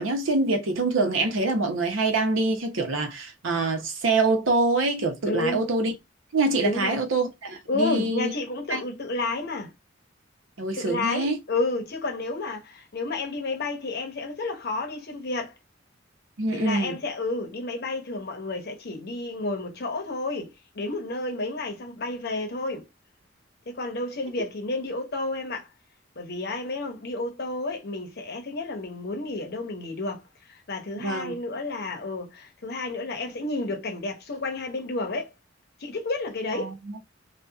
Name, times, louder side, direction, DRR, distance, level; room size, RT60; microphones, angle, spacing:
voice 1, 0.0-5.9 6.3-8.3 8.7-8.8 10.6-11.4 16.4-17.0 31.0-31.3 36.5-37.0, right 2 dB, 85° right, 0.7 m, -25 dB
voice 2, 5.3-5.7 6.6-7.0 7.7-9.7 10.8-15.5 16.5-22.9 23.7-25.7 26.2-35.3 35.8-36.7, left 2 dB, 55° left, 0.7 m, -31 dB
2.7 x 2.2 x 2.3 m
head